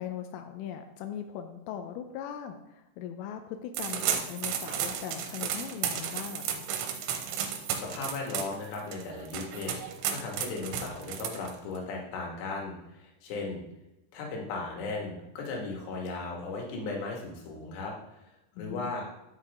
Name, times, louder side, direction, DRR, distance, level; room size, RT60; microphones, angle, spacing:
voice 1, 0.0-6.7 18.6-18.9, left 9 dB, 90° left, 6 dB, 3.3 m, -39 dB
sound 1, 3.7-11.8, right 8 dB, 85° right, 3.5 m, -33 dB
voice 2, 7.7-9.7 10.1-13.7 14.1-18.2 18.6-19.1, left 3 dB, 65° left, -1 dB, 3.7 m, -36 dB
10.5 x 7.5 x 3.6 m, 0.90 s
omnidirectional pair, 5.6 m